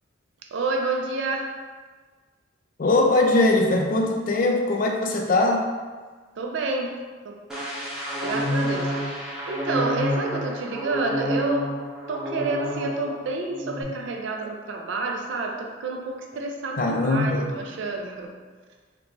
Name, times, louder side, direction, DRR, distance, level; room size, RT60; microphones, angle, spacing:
voice 1, 0.5-1.5 6.4-7.0 7.2-7.4 8.2-8.9 9.5-11.7 12.1-18.3, right 3 dB, 65° right, 1 dB, 0.4 m, -29 dB
voice 2, 2.8-5.7 16.8-17.5, left 2 dB, 45° left, 2 dB, 0.4 m, -21 dB
sound 1, 7.5-13.2 13.5-13.8, equal, 5° right, 0.6 m, -29 dB
3.9 x 2.2 x 2.9 m, 1.4 s
head